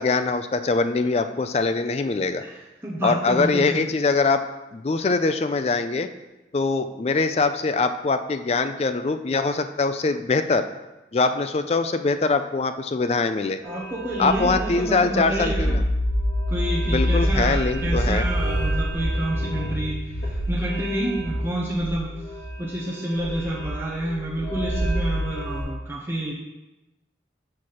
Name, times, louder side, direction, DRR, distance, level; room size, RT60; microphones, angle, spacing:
voice 1, 0.0-2.4 3.0-4.4 4.7-6.1 6.5-10.7 11.1-13.6 14.2-15.8 16.9-18.2, left 3 dB, 35° left, 9 dB, 0.4 m, -23 dB
voice 2, 2.4-3.9 13.6-15.8 16.5-26.3, right 1 dB, 15° right, -6 dB, 0.9 m, -29 dB
sound 1, 13.6-25.6, equal, 80° left, 2.3 m, -27 dB
6.6 x 6.1 x 4.2 m, 1.0 s
head